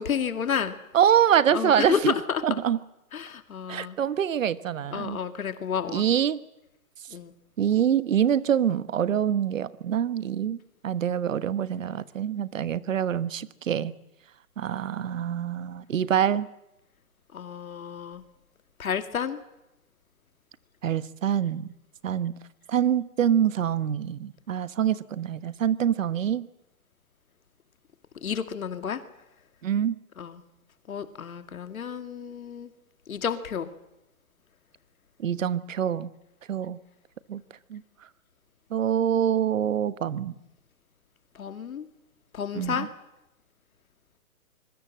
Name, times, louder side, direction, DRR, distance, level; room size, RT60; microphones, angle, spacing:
voice 1, 0.0-0.8 1.5-2.0 2.3-2.4 3.1-4.0 4.9-6.0 7.1-7.3 17.3-18.2 18.8-19.4 28.2-29.0 30.2-30.4 30.9-32.7 33.1-33.7 41.4-41.9 42.3-42.9, left 7 dB, 70° left, 9 dB, 2.3 m, -31 dB
voice 2, 0.9-2.1 2.4-2.8 3.7-5.2 5.9-6.4 7.6-10.6 10.8-13.9 14.6-16.5 20.8-21.7 22.0-22.4 22.7-26.5 29.6-30.0 35.2-36.1 36.5-36.8 37.3-37.4 37.7-37.8 38.7-40.3 42.5-42.9, right 9 dB, 60° right, 15 dB, 1.3 m, -25 dB
25.5 x 22.5 x 7.6 m, 0.90 s
hypercardioid pair, 170°, 44 cm